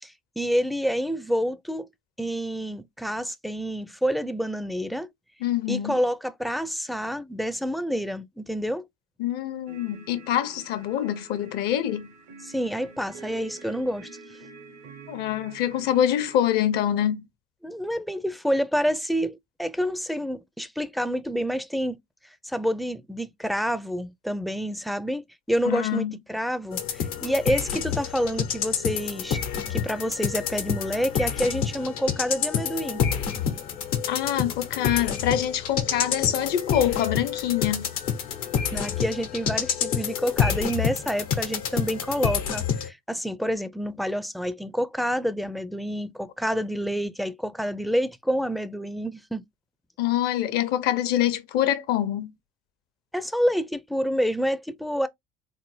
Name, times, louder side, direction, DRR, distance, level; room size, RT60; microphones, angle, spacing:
voice 1, 0.0-1.9 2.2-5.1 5.7-8.9 12.4-14.1 17.6-22.0 22.4-29.4 29.7-33.0 38.7-49.4 53.1-55.1, equal, ahead, 0.4 m, -28 dB
voice 2, 5.4-6.0 9.2-12.1 15.1-17.2 25.6-26.1 34.1-37.9 50.0-52.3, left 11 dB, 60° left, 0.7 m, -25 dB
sound 1, 9.7-16.5, right 4 dB, 80° right, 0.9 m, -47 dB
sound 2, 26.7-42.9, left 7 dB, 80° left, 1.0 m, -28 dB
4.1 x 2.0 x 3.1 m
hypercardioid pair, 75°, 18 cm